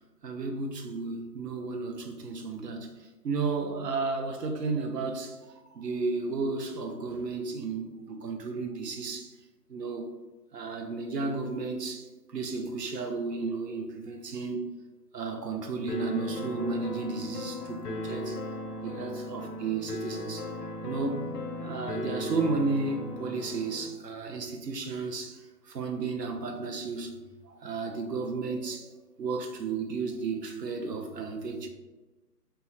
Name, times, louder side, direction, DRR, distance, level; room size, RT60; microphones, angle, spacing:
voice 1, 0.2-5.4 5.7-9.3 9.7-10.1 10.5-14.7 15.1-18.4 18.8-20.5 20.8-21.2 21.6-27.1 27.4-28.9 29.2-31.7, right 4 dB, 80° right, 0.7 m, -33 dB
sound 1, 15.9-23.9, left 2 dB, 75° left, 0.5 m, -37 dB
2.8 x 2.4 x 2.8 m
figure-of-eight pair, 145°, 49 cm